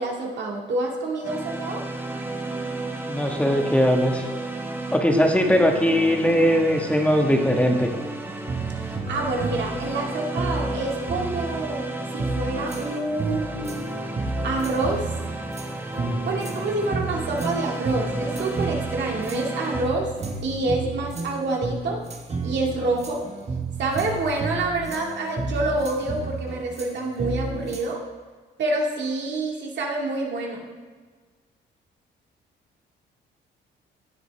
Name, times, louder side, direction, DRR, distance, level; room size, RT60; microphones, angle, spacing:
voice 1, 0.0-1.8 5.1-5.3 8.8-13.9 14.4-15.0 16.2-20.1 20.4-22.0 22.4-23.2 23.8-28.0 28.6-30.7, right 2 dB, 60° right, -1 dB, 2.2 m, -27 dB
sound 1, 1.2-19.9, right 2 dB, 10° right, 1.2 m, -33 dB
voice 2, 3.0-4.2 4.9-7.9, equal, 5° left, 2 dB, 1.6 m, -20 dB
sound 2, 8.2-12.9 13.2-27.9, right 3 dB, 35° right, 1.5 m, -32 dB
16.5 x 8.0 x 3.4 m, 1.5 s
cardioid pair, 90°, 20 cm